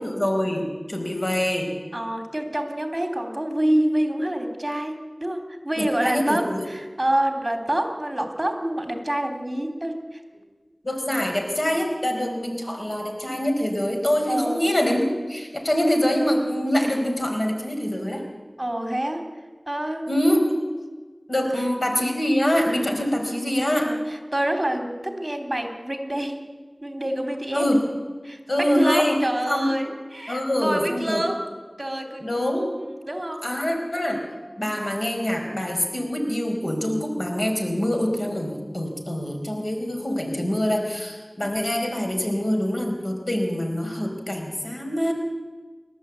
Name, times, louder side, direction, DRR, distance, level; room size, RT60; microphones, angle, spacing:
voice 1, 0.0-1.7 5.8-6.6 10.8-18.2 20.1-20.5 21.3-23.9 27.5-27.8 28.5-29.1 29.5-29.7 30.3-31.2 32.2-32.7 33.4-34.2 34.6-45.1, equal, 65° left, 2 dB, 4.6 m, -24 dB
voice 2, 1.9-10.2 14.3-14.6 18.6-19.3 19.7-20.2 21.3-21.7 23.8-26.4 26.8-27.7 28.2-32.3 32.8-33.5, right 1 dB, 25° right, 4 dB, 3.4 m, -27 dB
29.0 x 12.5 x 8.4 m, 1.4 s
wide cardioid pair, 45°, 0 cm